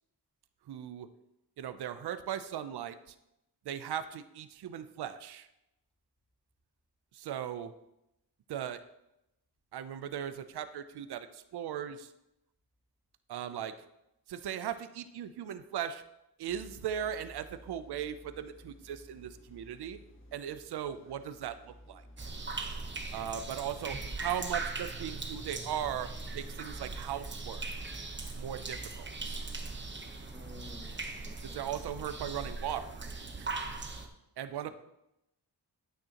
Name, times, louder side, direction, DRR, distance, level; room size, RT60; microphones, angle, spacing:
voice 1, 0.7-1.1 1.6-3.1 3.6-5.5 7.1-7.7 8.5-8.8 9.7-12.1 13.3-13.8 14.3-16.0 16.4-20.0 20.3-22.3 23.1-27.7 28.4-29.4 31.4-33.0 33.4-33.5 34.4-34.7, right 9 dB, 75° right, 11 dB, 0.6 m, -38 dB
sound 1, 16.5-31.4, equal, 30° left, 1.5 m, -55 dB
sound 2, 22.2-34.1, right 3 dB, 30° right, 1.0 m, -40 dB
voice 2, 30.3-31.6 34.6-34.7, left 2 dB, 5° left, 0 dB, 1.9 m, -52 dB
9.2 x 8.8 x 2.9 m, 0.87 s
cardioid pair, 90°, 39 cm